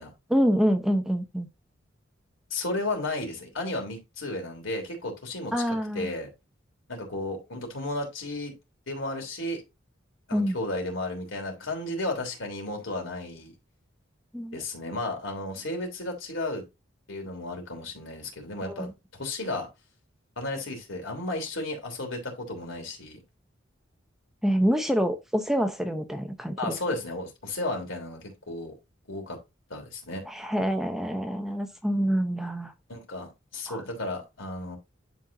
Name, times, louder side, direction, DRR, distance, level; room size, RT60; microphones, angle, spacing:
voice 1, 0.3-1.5 5.5-6.1 10.3-10.6 14.3-14.6 18.6-18.9 24.4-26.8 30.3-32.7 33.7-33.8, equal, ahead, 0.7 m, -26 dB
voice 2, 2.5-6.3 6.9-8.5 8.9-9.6 10.3-13.5 14.5-16.6 17.1-19.7 20.4-23.2 26.6-28.7 29.1-29.4 29.7-30.3 32.9-34.8, left 2 dB, 75° left, 3.1 m, -33 dB
11.5 x 4.3 x 2.7 m
head